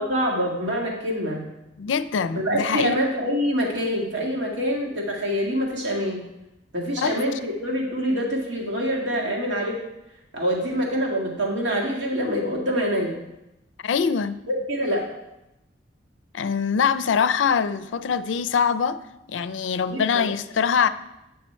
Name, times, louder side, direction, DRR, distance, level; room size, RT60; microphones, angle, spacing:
voice 1, 0.0-1.4 2.3-6.2 6.7-9.8 10.3-13.2 14.5-15.1 19.9-20.0, equal, 75° right, 1.9 m, -25 dB
voice 2, 1.8-2.9 7.0-7.1 13.8-14.4 16.3-19.0 19.3-20.9, left 6 dB, 85° left, 0.4 m, -23 dB
9.2 x 5.8 x 4.3 m
head